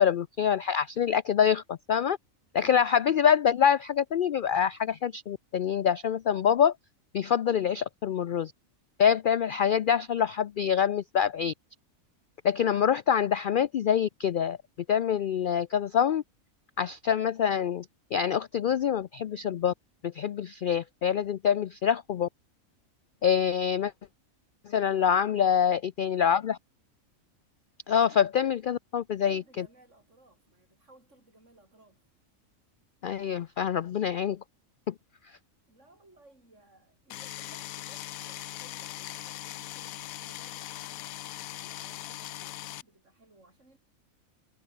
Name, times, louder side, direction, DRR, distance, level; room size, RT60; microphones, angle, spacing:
voice 1, 0.0-2.2 2.5-6.7 7.1-8.5 9.0-11.5 12.4-14.6 14.9-16.2 16.8-17.9 18.1-19.7 20.0-22.3 23.2-23.9 24.6-26.6 27.9-29.6 33.0-34.4 34.9-35.0, left 8 dB, 70° left, 0.4 m, -25 dB
voice 2, 2.5-2.9 24.7-25.8 27.9-28.2 29.2-32.0 35.7-43.8, right 2 dB, 60° right, 6.2 m, -59 dB
sound 1, 37.1-42.8, left 15 dB, 90° left, 1.0 m, -40 dB
omnidirectional pair, 1.4 m